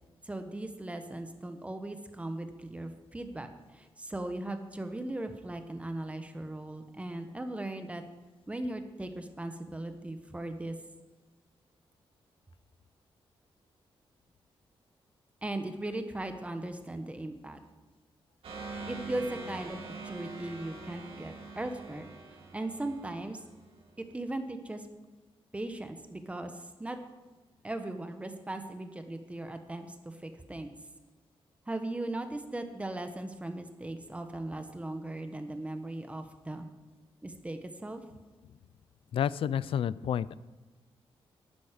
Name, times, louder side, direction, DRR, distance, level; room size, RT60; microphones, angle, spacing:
voice 1, 0.2-3.5 3.7-8.0 8.5-10.7 15.4-17.6 18.9-19.8 20.0-22.1 22.5-23.4 24.0-24.9 25.5-27.0 27.6-30.7 31.7-36.7 37.2-38.0, right 1 dB, 15° right, 7 dB, 1.0 m, -38 dB
sound 1, 18.4-23.8, right 3 dB, 75° right, 2.3 m, -44 dB
voice 2, 39.1-40.4, left 9 dB, 70° left, 19 dB, 0.4 m, -30 dB
12.0 x 9.3 x 5.1 m, 1.3 s
wide cardioid pair, 135°, 10 cm